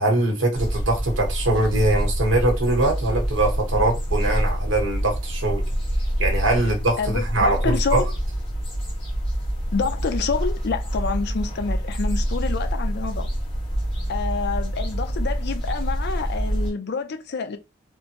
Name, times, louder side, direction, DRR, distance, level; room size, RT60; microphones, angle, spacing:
voice 1, 0.0-5.6 6.2-8.0, right 2 dB, 80° right, 1.1 m, -22 dB
sound 1, 0.5-16.7, equal, 30° left, 1.5 m, -26 dB
voice 2, 7.0-8.1 9.7-13.3 14.1-17.6, left 5 dB, 60° left, 0.5 m, -28 dB
3.3 x 2.0 x 2.9 m
head